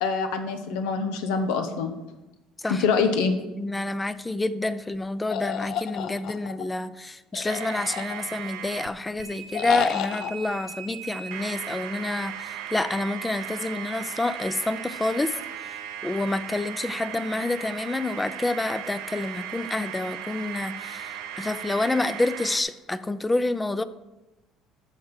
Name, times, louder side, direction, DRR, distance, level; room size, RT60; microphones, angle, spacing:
voice 1, 0.0-1.9 2.7-3.4, left 5 dB, 90° left, 7 dB, 1.1 m, -25 dB
voice 2, 3.6-15.4 16.0-23.8, left 2 dB, 10° left, 14 dB, 0.5 m, -28 dB
sound 1, 5.3-6.6 7.3-8.5 9.5-10.3, left 10 dB, 65° left, 0.5 m, -31 dB
sound 2, 7.5-8.9 9.2-22.6, right 10 dB, 85° right, 0.8 m, -37 dB
13.0 x 4.5 x 5.9 m, 1.0 s
cardioid pair, 115°, 0 cm